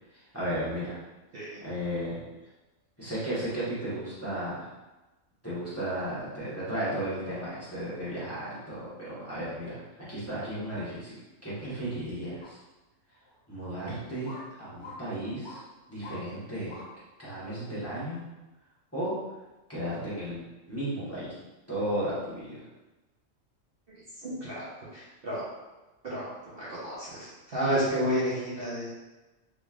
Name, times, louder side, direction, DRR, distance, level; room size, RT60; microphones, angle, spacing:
voice 1, 0.1-1.0 1.6-2.2 3.0-4.7 5.4-11.2 11.4-12.6 13.5-14.3 14.6-15.6 15.9-16.7 17.2-18.2 18.9-19.1 19.7-20.4 20.7-21.3 21.7-22.6, right 1 dB, 10° left, -11 dB, 1.0 m, -34 dB
sound 1, 12.4-12.5 13.2-13.3 14.3-14.4 14.8-15.0 15.4-15.6 16.0-16.2 16.7-16.9 17.4-17.5, left 3 dB, 50° left, 0.6 m, -44 dB
voice 2, 23.9-24.7 24.9-25.4 26.0-28.9, equal, 50° right, -8 dB, 0.9 m, -31 dB
3.6 x 3.1 x 2.4 m, 1.1 s
omnidirectional pair, 1.3 m